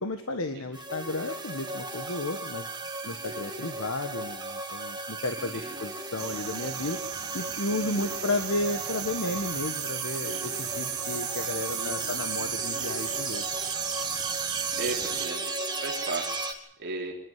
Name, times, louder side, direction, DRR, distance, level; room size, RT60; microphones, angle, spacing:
voice 1, 0.0-2.7 3.0-7.0 7.3-13.4, left 2 dB, 70° left, 7 dB, 1.5 m, -33 dB
sound 1, 0.7-16.5, right 3 dB, 20° right, 2.3 m, -34 dB
sound 2, 6.2-15.3, right 11 dB, 80° right, 1.2 m, -38 dB
voice 2, 11.7-12.2 14.8-15.4 15.8-17.1, right 3 dB, 55° right, 0 dB, 3.7 m, -36 dB
25.5 x 12.0 x 9.6 m, 0.79 s
head